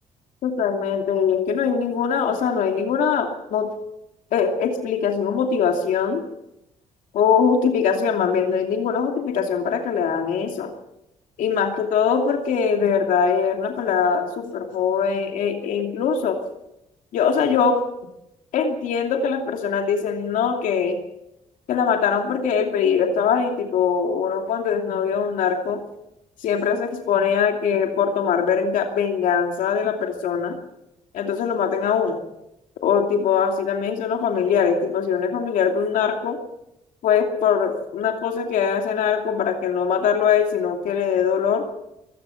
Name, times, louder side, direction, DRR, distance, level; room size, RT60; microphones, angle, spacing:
voice 1, 0.4-3.7 4.3-6.2 7.1-10.7 11.4-16.4 17.1-17.8 18.5-21.0 21.7-25.8 26.4-30.6 31.1-32.2 32.8-36.4 37.0-41.6, left 6 dB, 85° left, 3 dB, 2.7 m, -22 dB
24.0 x 19.0 x 5.8 m, 0.86 s
cardioid pair, 105°, 13 cm